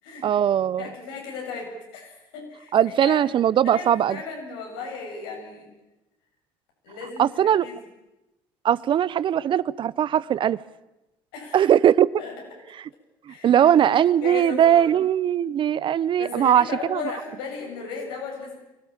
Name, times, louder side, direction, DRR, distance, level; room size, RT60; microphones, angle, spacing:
voice 1, 0.2-0.9 2.7-4.2 7.2-7.7 8.6-10.6 11.5-12.1 13.3-16.6 16.9-17.0, right 10 dB, 45° right, 20 dB, 0.7 m, -20 dB
voice 2, 0.8-3.2 3.6-5.7 6.8-7.7 11.3-11.6 12.2-12.3 13.3-13.9 14.2-14.9 16.2-18.6, left 5 dB, 85° left, 0 dB, 7.8 m, -36 dB
23.5 x 15.5 x 8.9 m, 0.98 s
supercardioid pair, 80°, 12 cm